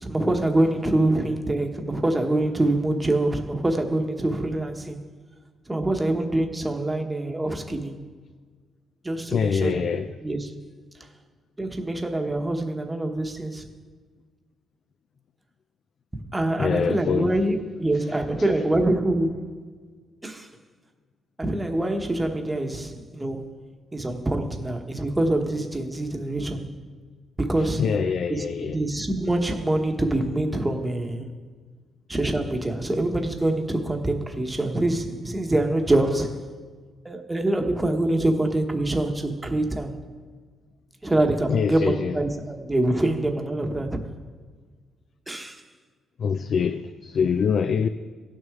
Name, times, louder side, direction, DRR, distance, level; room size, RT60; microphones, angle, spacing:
voice 1, 0.0-5.0 5.7-8.0 9.0-10.6 11.6-13.7 16.3-19.6 20.2-20.5 21.4-23.5 23.9-26.7 27.4-31.3 32.1-36.5 37.0-40.0 41.0-44.0 45.3-45.6, right 1 dB, 15° right, 1.1 m, -25 dB
voice 2, 9.3-10.1 16.6-17.4 27.8-28.8 41.5-42.2 46.2-47.9, left 6 dB, 55° left, 0.4 m, -24 dB
16.5 x 6.3 x 3.6 m
cardioid pair, 90°, 0 cm